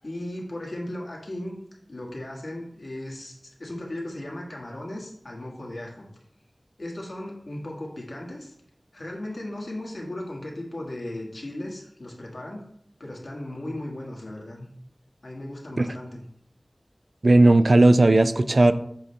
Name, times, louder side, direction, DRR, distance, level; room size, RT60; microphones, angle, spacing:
voice 1, 0.0-1.5 1.9-6.1 6.8-8.5 8.9-12.6 13.0-14.7 15.2-16.2, left 1 dB, 75° left, -2 dB, 1.6 m, -36 dB
voice 2, 17.2-18.7, right 2 dB, 65° right, 10 dB, 0.4 m, -16 dB
7.6 x 4.1 x 3.3 m, 0.69 s
wide cardioid pair, 45°, 0 cm